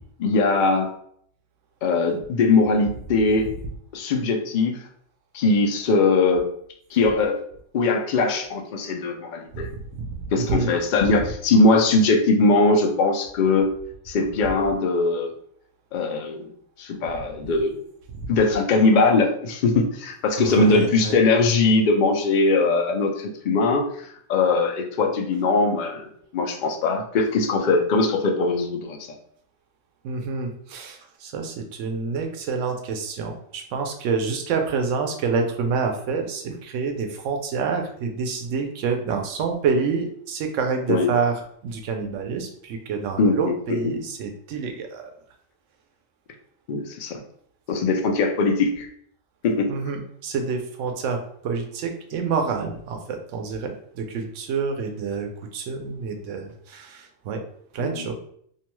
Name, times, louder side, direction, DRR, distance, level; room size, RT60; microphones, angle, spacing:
voice 1, 0.2-0.9 1.8-3.5 3.9-4.8 5.3-6.4 6.9-7.4 7.7-9.7 10.3-13.7 14.1-15.3 15.9-16.5 16.8-17.8 18.3-29.2 40.9-41.1 43.2-43.9 46.7-47.2 47.7-48.9 49.4-49.7 57.8-58.1, left 3 dB, 60° left, 4 dB, 0.5 m, -21 dB
voice 2, 9.5-10.7 17.4-17.5 20.4-21.1 30.0-45.1 49.7-57.4 57.7-58.1, right 5 dB, 90° right, 4 dB, 0.9 m, -27 dB
2.7 x 2.2 x 3.0 m, 0.64 s
omnidirectional pair, 1.2 m